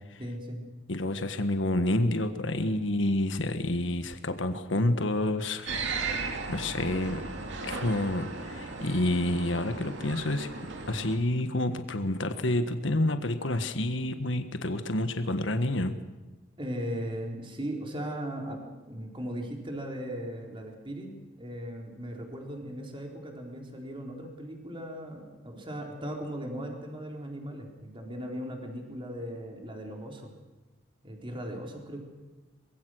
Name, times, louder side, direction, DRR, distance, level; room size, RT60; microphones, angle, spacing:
voice 1, 0.2-0.6 16.6-18.6 18.9-21.1 21.4-30.3 31.0-32.0, equal, 25° right, 1 dB, 4.0 m, -38 dB
voice 2, 0.9-5.8 6.2-7.2 7.6-10.5 10.9-16.0, left 1 dB, 70° left, 8 dB, 1.6 m, -29 dB
sound 1, 5.7-11.2, right 4 dB, 65° right, 2.5 m, -36 dB
24.0 x 21.5 x 6.4 m, 1.2 s
head